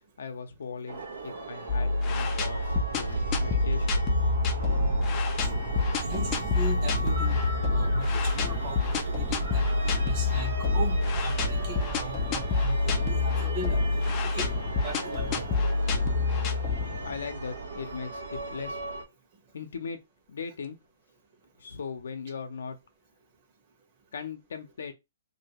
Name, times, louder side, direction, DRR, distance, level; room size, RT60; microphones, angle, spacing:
voice 1, 0.2-4.0 17.0-18.8 19.5-20.0 20.3-20.8 21.6-22.8 24.1-24.9, left 5 dB, 75° left, 0.7 m, -38 dB
sound 1, 0.9-19.0, right 2 dB, 85° right, 1.0 m, -33 dB
sound 2, 1.7-17.3, left 4 dB, 25° left, 0.4 m, -28 dB
voice 2, 6.0-7.4 7.7-13.8 14.3-15.4, right 3 dB, 35° right, 1.1 m, -39 dB
2.7 x 2.6 x 2.9 m
hypercardioid pair, 160°, 0 cm